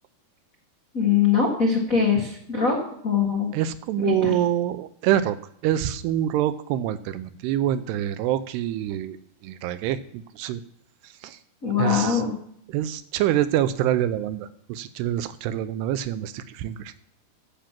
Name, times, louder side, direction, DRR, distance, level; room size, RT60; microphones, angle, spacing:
voice 1, 0.9-2.8 3.0-3.5 4.0-4.3 11.6-12.3, left 6 dB, 80° left, -1 dB, 0.7 m, -22 dB
voice 2, 3.5-5.4 5.6-9.2 9.4-10.6 11.2-11.4 11.8-12.2 12.7-16.9, right 11 dB, 80° right, 13 dB, 2.6 m, -26 dB
15.5 x 5.8 x 7.5 m, 0.67 s
omnidirectional pair, 5.0 m